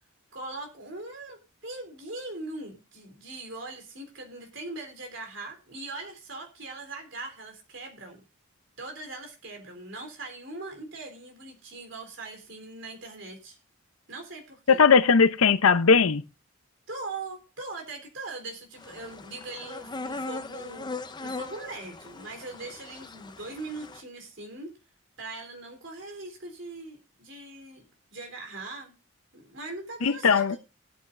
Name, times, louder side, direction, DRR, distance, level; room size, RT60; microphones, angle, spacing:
voice 1, 0.3-8.2 8.8-13.6 14.1-14.8 16.9-20.9 21.2-24.7 25.2-27.8 28.1-28.9 29.3-30.6, right 2 dB, 60° right, 3.5 m, -40 dB
voice 2, 14.7-16.2 30.0-30.6, left 5 dB, 90° left, 0.7 m, -19 dB
sound 1, 18.8-24.0, left 3 dB, 20° left, 0.6 m, -39 dB
19.0 x 8.7 x 2.5 m
head